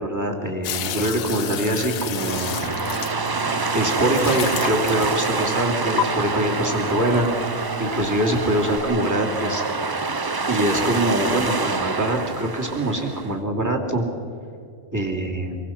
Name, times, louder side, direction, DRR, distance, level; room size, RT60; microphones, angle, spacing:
voice 1, 0.0-2.6 3.7-7.3 7.8-9.6 10.5-14.0 14.9-15.6, right 1 dB, 15° right, 0 dB, 2.8 m, -24 dB
sound 1, 0.6-3.6 4.1-5.4 6.0-6.1, left 10 dB, 80° left, 1.2 m, -30 dB
sound 2, 1.4-8.8, right 5 dB, 75° right, 1.8 m, -35 dB
sound 3, 2.2-13.3, right 4 dB, 30° right, 0.4 m, -26 dB
26.0 x 23.0 x 5.9 m, 2.5 s
omnidirectional pair, 1.4 m